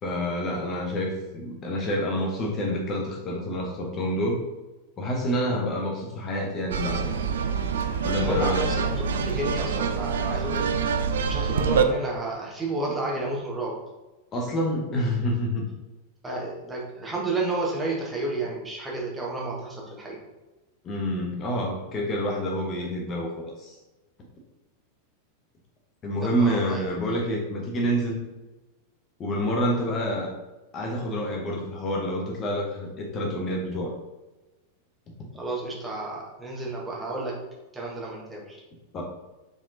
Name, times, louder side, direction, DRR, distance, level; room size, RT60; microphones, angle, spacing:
voice 1, 0.0-4.4 5.0-7.1 8.0-8.7 14.3-15.7 20.8-23.8 26.0-28.2 29.2-30.3 30.7-33.9 38.9-39.0, equal, 30° left, -1 dB, 0.8 m, -28 dB
sound 1, 6.7-11.8, right 6 dB, 60° right, 0.3 m, -26 dB
voice 2, 8.2-10.6 11.3-13.7 16.2-20.2 26.2-26.8 35.4-37.3 37.7-38.6, right 2 dB, 10° right, -3 dB, 1.1 m, -31 dB
5.0 x 3.5 x 2.7 m, 1.1 s
figure-of-eight pair, 90°, 0 cm